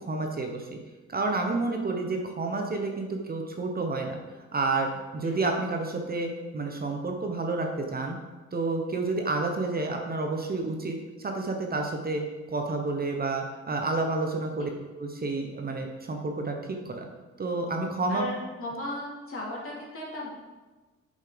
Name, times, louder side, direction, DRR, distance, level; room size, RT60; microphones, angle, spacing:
voice 1, 0.1-0.8 1.1-4.2 4.5-8.2 8.5-12.2 12.5-14.7 15.0-16.6 16.8-17.0 17.4-18.3, right 3 dB, 30° right, 2 dB, 1.0 m, -30 dB
voice 2, 18.1-20.3, left 1 dB, 45° left, -3 dB, 2.9 m, -36 dB
7.3 x 5.5 x 5.1 m, 1.2 s
cardioid pair, 90°, 30 cm